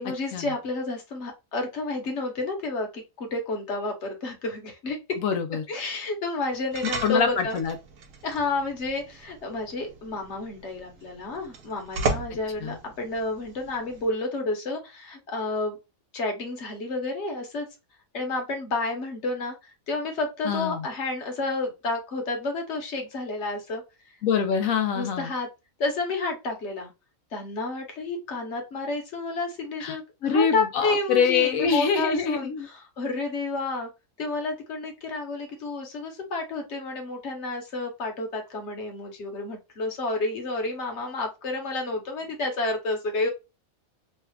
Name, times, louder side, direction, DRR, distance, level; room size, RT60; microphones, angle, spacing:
voice 1, 0.0-5.0 5.7-7.6 8.2-15.8 16.1-17.7 18.1-23.8 24.9-25.5 25.8-26.9 27.3-33.9 34.2-43.3, left 3 dB, 60° left, 1.3 m, -30 dB
voice 2, 5.2-5.6 7.0-7.7 12.6-12.8 20.4-20.8 24.2-25.3 29.8-30.0 30.2-32.7, left 6 dB, 80° left, 1.0 m, -24 dB
sound 1, 6.7-14.1, right 3 dB, 75° right, 1.0 m, -36 dB
3.2 x 2.4 x 3.2 m
omnidirectional pair, 1.4 m